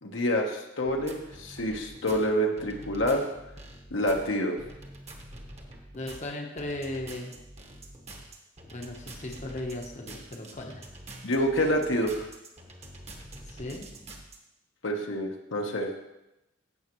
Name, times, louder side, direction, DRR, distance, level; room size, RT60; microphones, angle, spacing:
voice 1, 0.0-3.2 3.9-4.6 11.2-12.3 14.8-15.9, equal, 75° left, 1 dB, 1.2 m, -27 dB
sound 1, 0.8-14.4, right 1 dB, 35° right, 1.2 m, -46 dB
voice 2, 5.9-7.3 8.7-10.8 13.5-13.9, left 1 dB, 40° left, 1 dB, 1.0 m, -37 dB
15.5 x 6.4 x 3.1 m, 0.93 s
head